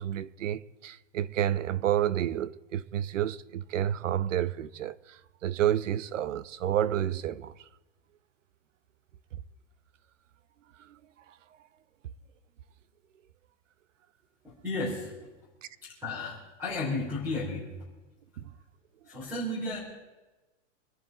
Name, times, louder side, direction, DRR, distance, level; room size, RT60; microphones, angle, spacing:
voice 1, 0.0-7.5 10.8-11.0 18.4-18.5, right 11 dB, 85° right, 0.9 m, -30 dB
voice 2, 14.4-15.3 15.8-17.7 19.0-19.8, left 2 dB, 5° right, 3.6 m, -33 dB
25.5 x 10.5 x 4.0 m
supercardioid pair, 180°, 37 cm